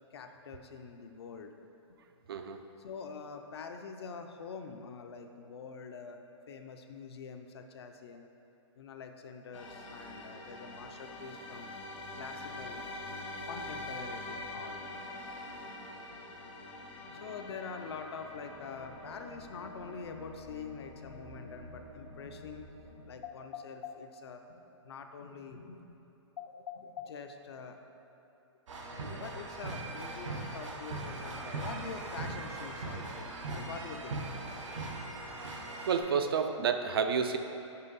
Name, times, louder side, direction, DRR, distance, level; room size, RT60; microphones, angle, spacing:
voice 1, 0.1-1.5 2.8-6.2 6.5-8.2 8.7-11.7 12.2-12.8 13.4-14.8 15.7-15.8 17.1-22.7 23.0-26.0 26.4-27.8 28.9-34.5, left 5 dB, 55° left, 6 dB, 0.5 m, -45 dB
sound 1, 9.5-23.1, left 2 dB, 75° left, 1.3 m, -45 dB
sound 2, 28.7-36.0, right 2 dB, 75° right, 0.9 m, -40 dB
voice 2, 35.9-37.4, right 6 dB, 50° right, 7 dB, 0.4 m, -29 dB
5.6 x 5.4 x 4.0 m, 2.9 s
hypercardioid pair, 170°, 16 cm